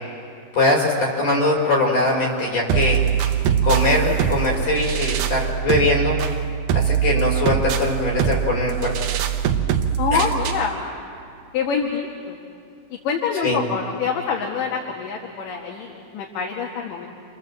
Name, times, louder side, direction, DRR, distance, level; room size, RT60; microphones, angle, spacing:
voice 1, 0.5-3.0 3.6-6.2 6.7-8.9 10.1-10.3 13.4-13.6, left 2 dB, 45° left, -2 dB, 6.3 m, -21 dB
sound 1, 2.7-10.7, right 9 dB, 70° right, 2.1 m, -22 dB
voice 2, 10.0-10.8 11.5-12.4 13.0-17.1, left 6 dB, 70° left, -1 dB, 3.2 m, -25 dB
28.5 x 25.5 x 7.5 m, 2.4 s
omnidirectional pair, 4.1 m